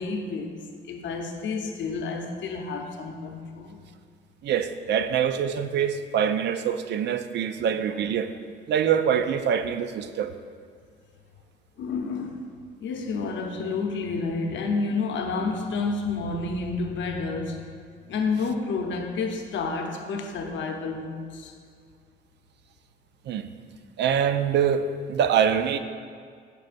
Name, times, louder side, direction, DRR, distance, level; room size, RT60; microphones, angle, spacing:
voice 1, 0.0-3.8 7.6-7.7 11.8-17.7 18.1-21.6, left 4 dB, 70° left, 0.7 m, -30 dB
voice 2, 4.4-8.3 8.7-10.3 23.3-23.5 24.0-25.8, right 8 dB, 60° right, 0.4 m, -24 dB
9.0 x 4.8 x 2.5 m
cardioid pair, 90°, 20 cm